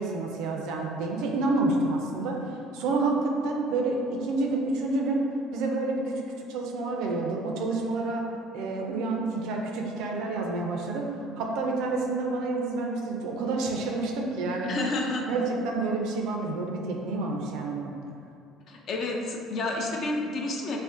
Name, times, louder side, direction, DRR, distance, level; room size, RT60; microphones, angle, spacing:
voice 1, 0.0-5.2 5.5-8.3 8.5-14.7 15.3-17.9, right 3 dB, 70° right, 0 dB, 0.4 m, -29 dB
voice 2, 14.6-15.3 18.7-20.8, left 2 dB, 55° left, 0 dB, 0.4 m, -30 dB
2.5 x 2.1 x 3.6 m, 2.5 s
hypercardioid pair, 65°, 0 cm